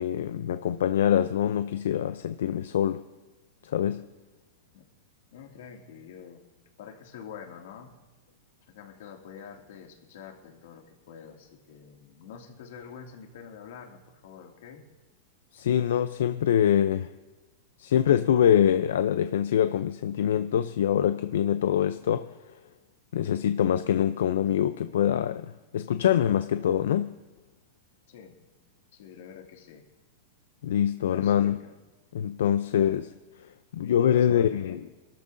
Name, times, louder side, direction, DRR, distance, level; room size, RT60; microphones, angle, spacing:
voice 1, 0.0-3.0 3.7-4.0 15.5-17.1 17.8-22.3 23.1-27.1 30.6-31.6 32.1-33.0 33.7-34.8, left 9 dB, 85° left, 0.5 m, -24 dB
voice 2, 5.3-6.4 6.8-7.9 8.7-14.9 28.1-28.4 28.9-29.9 31.1-31.8 32.7-33.0 34.0-34.8, left 7 dB, 65° left, 2.3 m, -46 dB
25.0 x 13.0 x 2.7 m
supercardioid pair, 165°, 0 cm